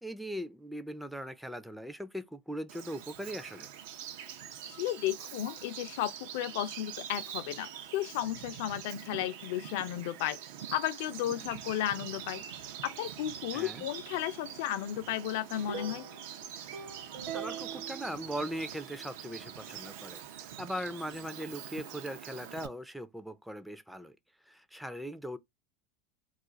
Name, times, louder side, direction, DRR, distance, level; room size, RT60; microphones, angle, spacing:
voice 1, 0.0-3.7 13.5-13.8 17.3-24.1 24.5-25.4, equal, ahead, 0.4 m, -40 dB
Bird vocalization bird call bird song, 2.7-22.7, right 9 dB, 75° right, 0.5 m, -44 dB
voice 2, 4.6-10.4 10.7-12.4 12.8-16.1, left 12 dB, 70° left, 0.4 m, -34 dB
sound 1, 15.5-18.9, right 6 dB, 55° right, 0.9 m, -43 dB
2.4 x 2.4 x 3.9 m
supercardioid pair, 125°, 0 cm